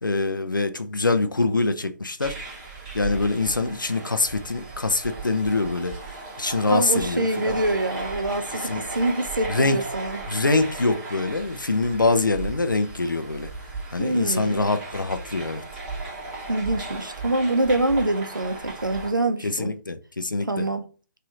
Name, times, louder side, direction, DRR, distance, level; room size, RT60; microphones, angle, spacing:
voice 1, 0.0-2.3 2.9-6.0 6.4-7.6 8.6-8.8 9.5-9.8 10.3-13.5 13.9-15.6 19.4-20.7, left 3 dB, 75° left, 0.6 m, -24 dB
sound 1, 2.2-19.1, right 3 dB, 10° right, 1.0 m, -36 dB
voice 2, 6.7-10.2 14.0-14.7 16.5-19.7 20.5-20.8, right 2 dB, 80° right, 0.6 m, -25 dB
3.2 x 2.7 x 4.0 m
figure-of-eight pair, 145°, 11 cm